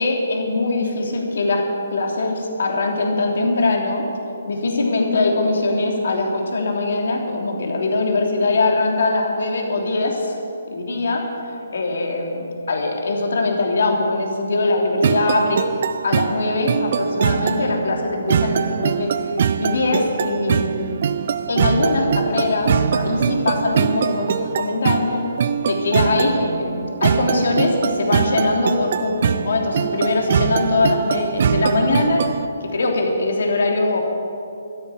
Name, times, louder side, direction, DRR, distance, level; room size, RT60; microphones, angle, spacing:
voice 1, 0.0-1.6 1.9-4.0 4.5-10.4 10.7-11.2 11.7-15.6 16.0-19.1 19.6-20.9 21.5-25.2 25.6-32.2 32.6-34.0, left 3 dB, 65° left, 1 dB, 3.2 m, -21 dB
sound 1, 15.0-32.5, right 7 dB, 50° right, 0.6 m, -22 dB
13.0 x 10.5 x 9.7 m, 2.6 s
figure-of-eight pair, 140°, 0 cm